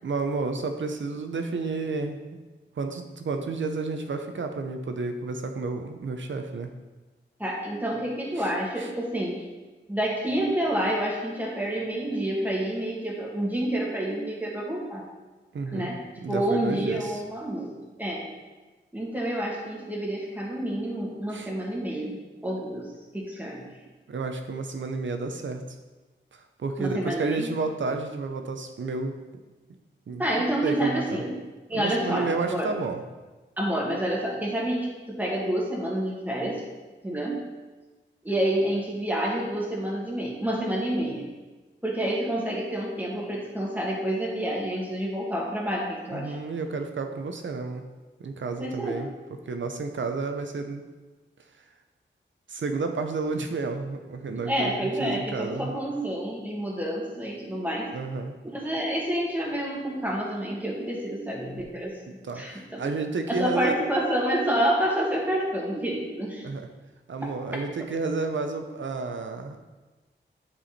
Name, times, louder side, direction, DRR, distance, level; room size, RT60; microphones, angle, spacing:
voice 1, 0.0-2.2 2.8-6.7 8.4-8.5 8.8-8.9 15.5-15.9 16.2-17.2 21.3-21.5 24.1-25.8 26.3-29.2 30.1-30.2 30.6-31.2 31.7-33.0 46.1-47.8 48.2-49.1 49.5-50.8 52.5-55.8 57.9-58.3 62.1-63.8 66.4-66.7 67.1-69.6, right 3 dB, 75° right, 6 dB, 0.8 m, -31 dB
voice 2, 7.4-9.4 9.9-15.0 15.7-18.3 18.9-23.7 26.8-27.5 30.2-31.3 31.7-32.7 33.6-36.6 37.0-37.5 38.2-41.3 41.8-46.4 48.6-49.0 54.5-57.9 58.5-62.0 62.3-62.8 63.3-66.5, right 1 dB, 10° right, -3 dB, 2.0 m, -28 dB
9.0 x 4.8 x 4.2 m, 1.2 s
wide cardioid pair, 80°, 20 cm